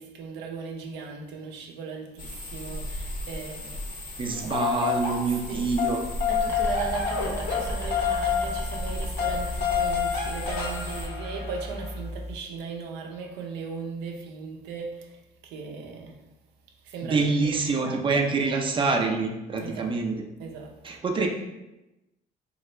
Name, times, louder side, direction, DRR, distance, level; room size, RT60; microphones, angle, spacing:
voice 1, 0.0-4.5 5.3-5.7 6.3-16.2 16.8-18.2 19.6-21.0, right 5 dB, 85° right, 3 dB, 0.5 m, -38 dB
sound 1, 2.2-11.1, equal, 50° left, 0.7 m, -36 dB
voice 2, 4.2-6.0 17.0-20.2 20.8-21.3, right 4 dB, 30° right, 2 dB, 0.5 m, -26 dB
sound 2, 4.3-5.5 5.8-11.9, left 7 dB, 85° left, 1.0 m, -29 dB
sound 3, 6.4-12.4, equal, 15° left, 0.7 m, -37 dB
2.8 x 2.3 x 3.1 m, 0.98 s
cardioid pair, 110°, 17 cm